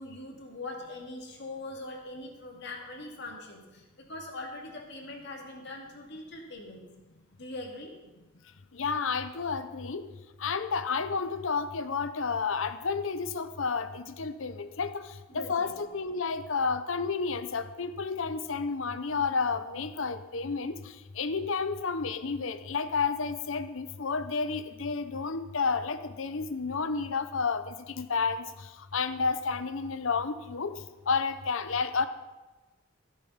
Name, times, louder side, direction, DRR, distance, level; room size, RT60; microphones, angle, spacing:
voice 1, 0.0-6.9 7.4-8.0 15.3-15.7, left 2 dB, 55° left, 1 dB, 2.3 m, -42 dB
voice 2, 8.7-10.1 10.4-15.0 15.3-20.8 21.2-28.5 28.9-30.8 31.1-32.1, left 5 dB, 70° left, 11 dB, 0.8 m, -31 dB
14.5 x 8.3 x 5.7 m, 1.1 s
head